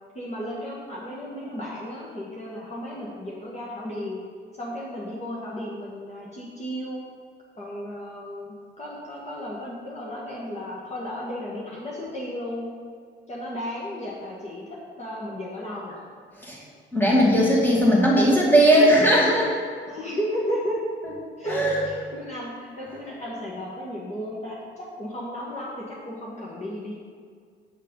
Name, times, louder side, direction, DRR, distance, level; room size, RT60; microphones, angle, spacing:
voice 1, 0.1-4.2 4.6-7.0 7.6-12.7 13.3-16.0 19.9-20.8 21.4-26.9, equal, 35° left, -6 dB, 1.8 m, -34 dB
voice 2, 16.9-19.5 21.5-21.8, equal, 10° left, -4 dB, 2.4 m, -18 dB
8.2 x 5.6 x 5.5 m, 2.1 s
cardioid pair, 90°, 20 cm